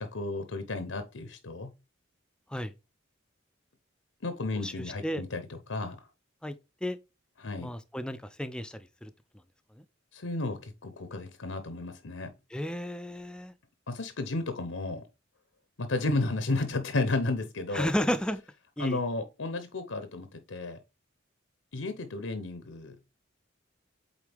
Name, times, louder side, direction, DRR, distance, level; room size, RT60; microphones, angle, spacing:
voice 1, 0.0-1.7 4.2-6.1 7.4-7.7 10.1-12.3 13.9-15.0 15.8-17.9 18.8-20.8 21.7-23.0, left 2 dB, 85° left, 0.8 m, -33 dB
voice 2, 4.6-5.2 6.4-7.0 7.6-9.1 9.8-9.9 12.5-13.5 17.7-18.4 18.8-19.0, equal, 5° left, 0.4 m, -33 dB
8.2 x 3.7 x 3.5 m
head